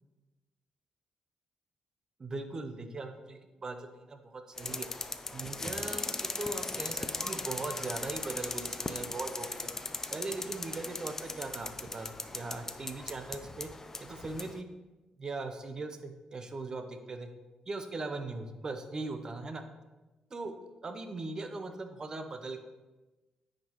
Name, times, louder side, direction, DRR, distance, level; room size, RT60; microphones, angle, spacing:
voice 1, 2.2-4.9 5.3-9.7 10.1-13.7 14.0-14.7 15.2-17.3 17.7-19.6 20.3-20.5 20.8-22.6, right 3 dB, 35° right, 7 dB, 0.7 m, -39 dB
sound 1, 4.6-14.6, left 3 dB, 20° left, 0.4 m, -38 dB
9.2 x 5.2 x 3.1 m, 1.1 s
cardioid pair, 105°, 2 cm